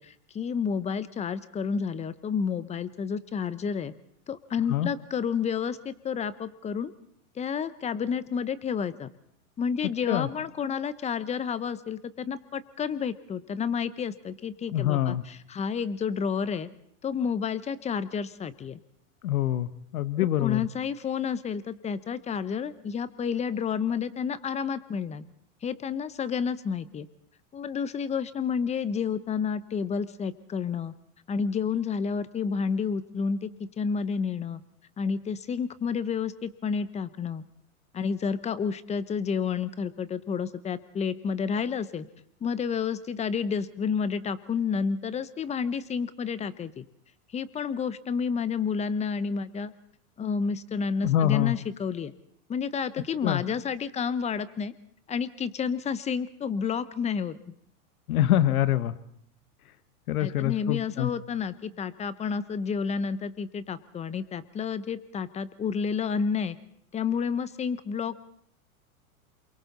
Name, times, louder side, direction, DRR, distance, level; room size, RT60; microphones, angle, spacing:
voice 1, 0.0-3.9 4.3-6.9 7.4-9.1 9.6-16.7 17.0-18.8 20.2-25.2 25.6-27.1 27.5-30.9 31.3-34.6 35.0-37.4 37.9-42.1 42.4-46.8 47.3-49.7 50.2-52.1 52.5-54.7 55.1-57.4 60.2-66.6 66.9-68.2, left 6 dB, 15° left, 15 dB, 0.8 m, -30 dB
voice 2, 14.7-15.2 19.2-20.6 51.0-51.5 53.2-53.4 58.1-58.9 60.1-61.1, left 12 dB, 80° left, 14 dB, 1.2 m, -25 dB
28.0 x 23.0 x 4.2 m, 0.68 s
hypercardioid pair, 125°, 43 cm